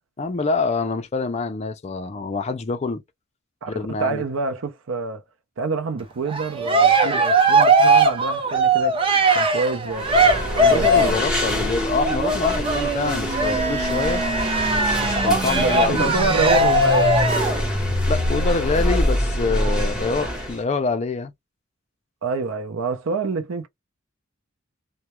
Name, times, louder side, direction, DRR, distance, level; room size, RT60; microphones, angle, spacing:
voice 1, 0.2-3.0 3.7-4.2 10.7-14.2 15.0-16.1 18.1-21.3, left 4 dB, 30° left, 0.4 m, -26 dB
voice 2, 3.6-5.2 5.6-9.0 9.3-10.1 10.5-11.2 15.6-17.6 22.2-23.7, right 3 dB, 75° right, 0.5 m, -27 dB
Cheering, 6.3-11.3 12.0-17.6, right 2 dB, 25° right, 0.5 m, -19 dB
sound 1, 9.9-20.6, equal, 5° right, 1.0 m, -27 dB
sound 2, 10.0-20.0, left 1 dB, 55° right, 0.9 m, -28 dB
2.2 x 2.1 x 2.9 m
head